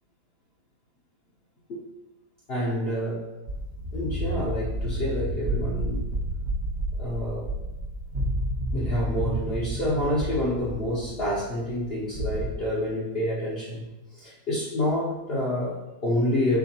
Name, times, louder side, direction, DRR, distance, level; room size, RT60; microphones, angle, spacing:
voice 1, 2.5-3.2 3.9-6.0 7.0-7.5 8.7-13.9 14.1-16.6, left 1 dB, 50° left, -6 dB, 0.9 m, -28 dB
sound 1, 3.5-12.5, right 1 dB, 55° right, 1.1 m, -30 dB
4.6 x 3.9 x 2.8 m, 1.0 s
omnidirectional pair, 1.6 m